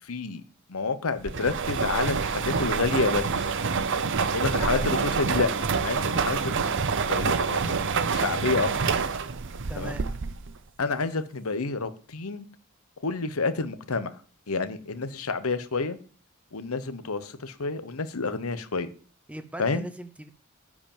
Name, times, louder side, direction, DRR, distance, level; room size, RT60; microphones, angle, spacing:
voice 1, 0.1-0.4 0.7-3.3 4.3-5.5 5.8-6.7 7.1-7.6 8.1-8.7 9.8-10.0 10.8-12.5 13.0-14.1 14.5-16.0 16.5-18.9 19.6-19.9, left 4 dB, 90° left, 1.0 m, -29 dB
sound 1, 1.3-10.6, right 5 dB, 60° right, 0.7 m, -27 dB
voice 2, 4.6-4.9 9.7-10.1 19.3-20.3, right 1 dB, 5° right, 0.7 m, -39 dB
10.5 x 4.9 x 7.4 m
head